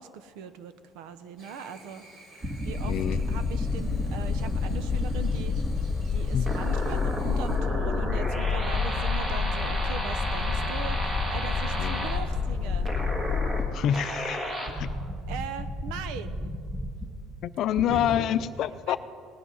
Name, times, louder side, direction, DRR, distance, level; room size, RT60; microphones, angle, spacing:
voice 1, 0.0-2.3 2.6-2.9 3.3-5.6 6.1-12.9 15.3-16.6 17.9-18.4 18.9-19.0, right 7 dB, 85° right, 12 dB, 0.9 m, -40 dB
Chirp tweet / Buzz, 1.4-7.6, right 1 dB, 45° right, 3.2 m, -52 dB
sound 1, 2.4-5.8 6.4-12.2 12.8-13.7 13.9-17.1 17.8-18.2, equal, 20° right, 1.6 m, -33 dB
Boat Water vehicle, 2.6-13.7, left 5 dB, 20° left, 1.5 m, -29 dB
voice 2, 2.9-3.2 6.3-6.5 11.8-12.1 13.7-14.9 17.4-19.0, left 10 dB, 45° left, 13 dB, 0.5 m, -27 dB
18.5 x 10.0 x 5.6 m, 2.2 s
cardioid pair, 175°, 0 cm